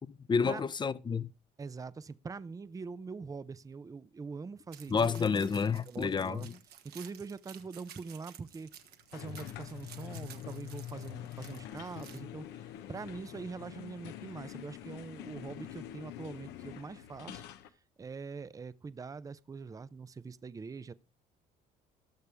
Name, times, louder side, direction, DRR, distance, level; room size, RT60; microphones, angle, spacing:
voice 1, 0.3-1.3 4.9-6.5, left 5 dB, 25° left, 0.7 m, -29 dB
voice 2, 1.6-5.1 5.9-6.5 6.8-8.7 9.1-17.4 18.0-20.9, right 4 dB, 20° right, 0.6 m, -43 dB
sound 1, 4.7-12.2, right 10 dB, 70° right, 1.5 m, -54 dB
sound 2, 9.1-17.7, left 12 dB, 90° left, 1.1 m, -45 dB
19.5 x 6.6 x 3.4 m
cardioid pair, 110°, 17 cm